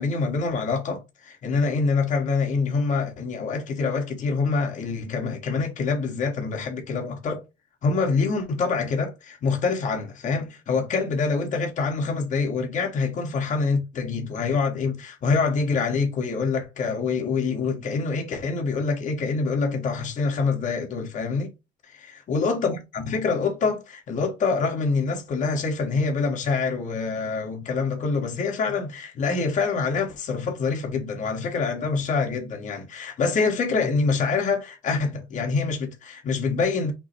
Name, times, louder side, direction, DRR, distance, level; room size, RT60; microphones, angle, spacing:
voice 1, 0.0-7.4 7.8-21.5 22.3-36.9, left 4 dB, 45° left, 1.3 m, -25 dB
5.9 x 2.0 x 4.4 m
cardioid pair, 110°, 17 cm